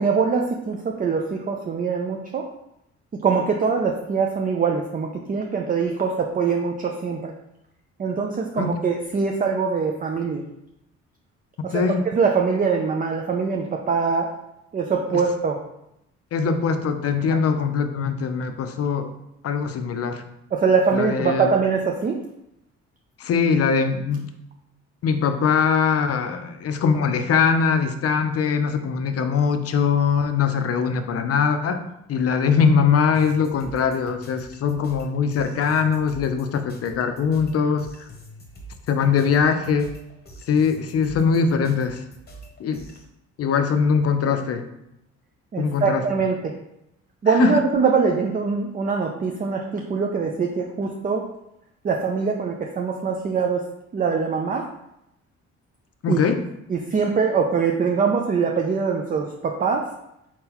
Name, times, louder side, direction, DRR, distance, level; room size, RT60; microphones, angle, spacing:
voice 1, 0.0-2.5 3.2-7.3 8.0-10.4 11.6-11.8 12.1-14.3 14.7-15.6 17.3-17.4 20.5-22.2 45.5-46.5 47.2-51.2 51.8-53.6 53.9-54.7 56.1-56.2 56.7-59.9, right 5 dB, 30° right, 2 dB, 0.4 m, -23 dB
voice 2, 11.7-12.1 16.3-19.1 19.4-20.2 20.9-21.5 23.2-24.3 25.0-31.8 32.1-37.9 38.9-40.0 40.5-42.0 42.6-42.8 43.4-44.6 45.6-46.0 47.3-47.6 56.0-56.4, left 6 dB, 50° left, 8 dB, 0.5 m, -21 dB
sound 1, 33.1-43.0, equal, 30° left, 1.0 m, -44 dB
4.4 x 3.8 x 2.9 m, 0.84 s
cardioid pair, 90°, 30 cm